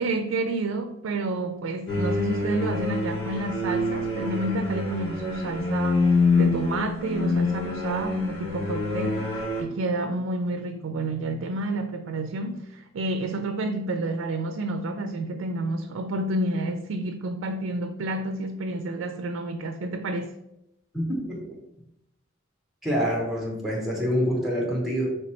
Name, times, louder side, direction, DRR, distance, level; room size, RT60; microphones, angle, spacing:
voice 1, 0.0-20.3, right 2 dB, 85° right, 7 dB, 0.3 m, -29 dB
sound 1, 1.9-9.6, left 3 dB, 65° left, 1.3 m, -26 dB
voice 2, 20.9-21.4 22.8-25.1, equal, ahead, -2 dB, 0.8 m, -26 dB
3.2 x 3.1 x 4.2 m, 0.85 s
head